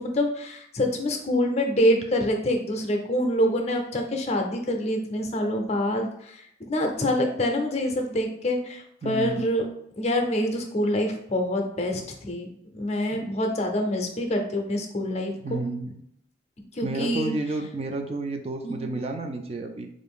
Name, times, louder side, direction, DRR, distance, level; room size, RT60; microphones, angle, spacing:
voice 1, 0.0-9.6 10.0-12.5 12.7-15.6 16.7-17.3 18.6-18.9, left 1 dB, 35° left, 3 dB, 0.6 m, -26 dB
voice 2, 9.0-9.5 13.1-13.3 15.3-16.0 16.8-19.9, right 2 dB, 30° right, 5 dB, 0.4 m, -31 dB
4.4 x 2.6 x 3.5 m, 0.74 s
head